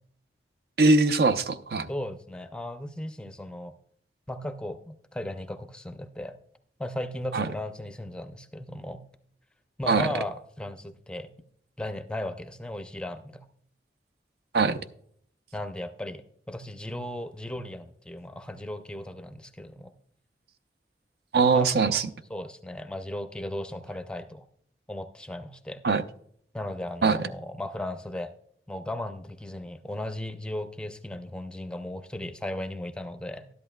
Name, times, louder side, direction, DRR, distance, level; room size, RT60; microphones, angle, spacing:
voice 1, 0.8-1.9 7.3-7.5 9.9-10.1 14.5-14.8 21.3-22.0 25.8-26.0 27.0-27.2, right 3 dB, 65° right, 10 dB, 0.6 m, -21 dB
voice 2, 1.9-3.8 4.3-6.3 6.8-9.0 9.8-11.3 11.8-13.4 15.5-19.9 21.5-22.0 22.3-24.4 24.9-25.8 26.5-28.3 28.7-33.5, left 1 dB, 5° left, 8 dB, 0.5 m, -36 dB
12.5 x 11.0 x 2.2 m, 0.64 s
head